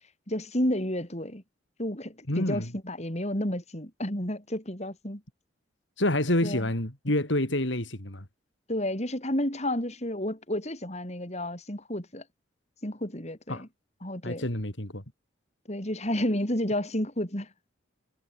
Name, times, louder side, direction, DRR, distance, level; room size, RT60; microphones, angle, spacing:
voice 1, 0.3-1.4 1.8-5.2 6.4-6.7 8.7-12.2 12.8-13.7 14.0-14.5 15.7-17.5, left 1 dB, 35° left, 5.3 m, -31 dB
voice 2, 2.3-2.7 6.0-8.3 13.5-13.6 14.2-15.0, left 1 dB, 70° left, 4.1 m, -28 dB
head